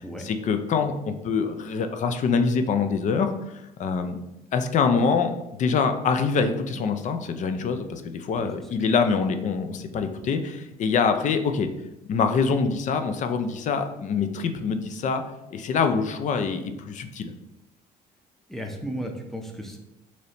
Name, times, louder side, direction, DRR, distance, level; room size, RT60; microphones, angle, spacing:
voice 1, 0.2-3.3 3.8-4.2 4.5-5.3 5.6-11.7 12.1-15.2 15.5-17.3, left 5 dB, 45° left, 8 dB, 0.4 m, -25 dB
voice 2, 8.3-8.9 18.5-19.8, equal, ahead, 2 dB, 0.6 m, -35 dB
3.1 x 2.7 x 4.1 m, 0.91 s
cardioid pair, 110°, 17 cm